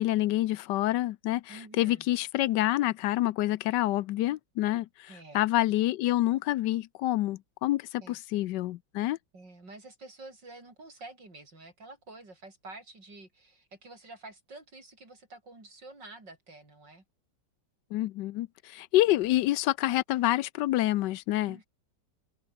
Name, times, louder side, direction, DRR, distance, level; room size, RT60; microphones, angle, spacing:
voice 1, 0.0-5.1 5.3-9.2 17.9-21.6, left 15 dB, 80° left, 1.2 m, -27 dB
voice 2, 1.5-2.1 5.1-5.5 8.0-8.2 9.3-17.0 21.5-21.7, right 2 dB, 85° right, 7.3 m, -49 dB
omnidirectional pair, 1.9 m